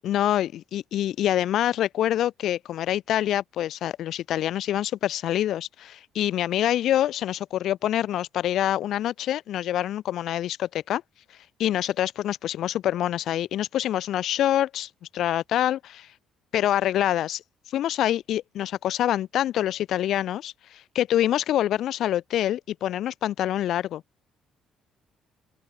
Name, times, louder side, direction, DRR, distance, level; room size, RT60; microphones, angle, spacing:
voice 1, 0.0-11.0 11.6-16.1 16.5-17.4 17.7-24.0, left 12 dB, 60° left, 5.0 m, -26 dB
open air
cardioid pair, 150°, 0 cm